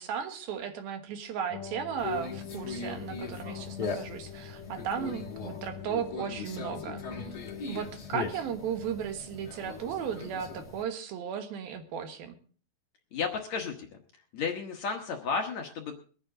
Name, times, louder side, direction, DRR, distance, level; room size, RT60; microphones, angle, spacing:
voice 1, 0.0-7.3 7.6-12.4, right 8 dB, 75° right, 7 dB, 3.1 m, -35 dB
sound 1, 1.5-8.6, left 9 dB, 80° left, 3.2 m, -44 dB
Conversation, 2.0-10.8, left 4 dB, 40° left, 1.4 m, -40 dB
voice 2, 13.1-13.9 14.3-15.9, left 5 dB, 60° left, 3 dB, 2.0 m, -33 dB
23.0 x 9.2 x 3.8 m, 0.41 s
omnidirectional pair, 4.4 m